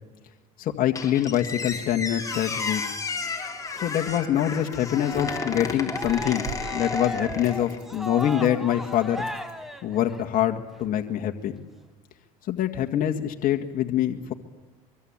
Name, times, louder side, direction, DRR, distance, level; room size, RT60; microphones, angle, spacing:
voice 1, 0.6-2.8 3.8-9.3 9.8-11.6 12.5-14.3, left 11 dB, 50° left, 4 dB, 2.0 m, -25 dB
Squeak, 0.9-7.8, left 4 dB, 15° left, 4.3 m, -33 dB
Rattle, 3.5-9.6, right 7 dB, 65° right, 6.9 m, -46 dB
Cheering, 4.9-10.4, equal, ahead, 2.5 m, -35 dB
24.5 x 23.5 x 8.9 m, 1.2 s
supercardioid pair, 105°, 18 cm